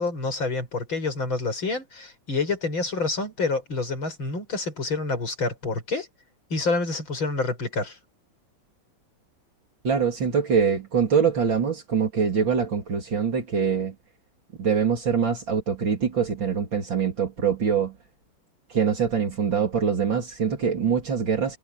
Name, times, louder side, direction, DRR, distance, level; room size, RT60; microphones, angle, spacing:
voice 1, 0.0-6.1 6.5-8.0, left 3 dB, 85° left, 7.0 m, -28 dB
voice 2, 9.8-14.0 14.6-18.0 18.7-21.6, right 6 dB, 70° right, 3.8 m, -24 dB
omnidirectional pair, 2.1 m